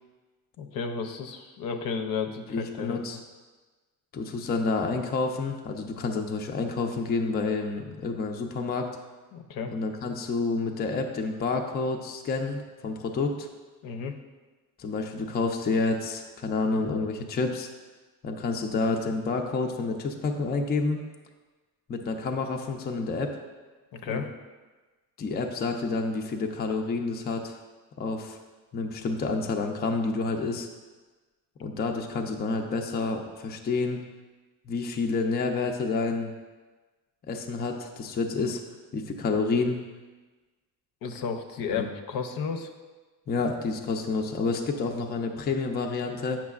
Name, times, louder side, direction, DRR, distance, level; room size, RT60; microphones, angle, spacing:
voice 1, 0.6-3.2 9.3-9.7 13.8-14.2 23.9-24.3 41.0-42.7, left 5 dB, 70° left, 6 dB, 0.6 m, -33 dB
voice 2, 2.5-3.2 4.1-8.9 9.7-13.5 14.8-17.7 18.2-21.0 21.9-23.4 24.1-24.2 25.2-27.6 28.0-28.4 28.7-30.7 31.6-34.0 34.7-36.3 37.3-38.6 38.9-39.8 41.7-41.9 43.3-46.4, left 3 dB, 25° left, 3 dB, 0.5 m, -29 dB
8.4 x 5.9 x 2.4 m, 1.3 s
cardioid pair, 140°, 37 cm